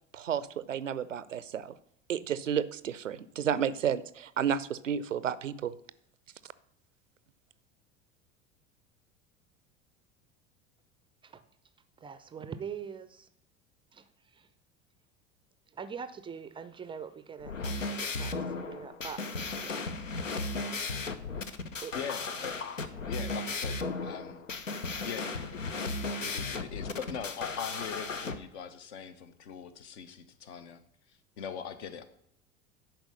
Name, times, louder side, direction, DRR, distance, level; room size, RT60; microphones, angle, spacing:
voice 1, 0.1-1.7 2.1-5.7 6.4-6.5, right 8 dB, 80° right, 17 dB, 0.5 m, -32 dB
voice 2, 12.0-13.3 13.9-14.5 15.7-19.8 21.8-21.9 26.3-26.4, right 6 dB, 15° right, 12 dB, 0.4 m, -43 dB
sound 1, 17.4-28.3, left 3 dB, 85° left, 0.7 m, -35 dB
voice 3, 21.9-24.5 24.8-25.6 26.0-30.8 31.1-32.0, left 7 dB, 60° left, 10 dB, 1.0 m, -42 dB
10.5 x 4.6 x 6.4 m, 0.70 s
figure-of-eight pair, 75°, 37 cm